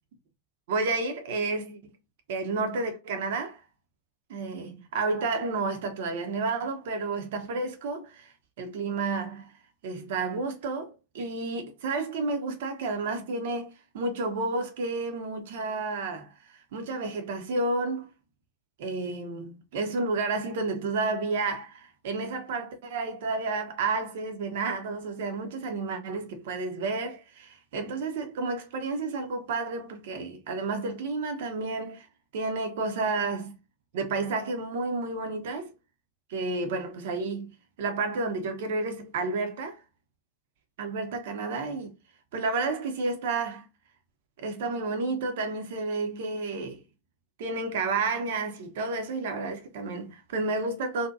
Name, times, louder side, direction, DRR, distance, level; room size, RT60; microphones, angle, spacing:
voice 1, 0.7-1.8 2.3-3.6 4.3-9.5 9.8-18.1 18.8-32.1 32.3-33.5 33.9-35.7 36.3-37.5 37.8-39.8 40.8-41.9 42.3-43.7 44.4-46.8 47.4-51.1, right 3 dB, 55° right, 0.5 m, -31 dB
2.7 x 2.1 x 2.3 m
figure-of-eight pair, 90°, 0 cm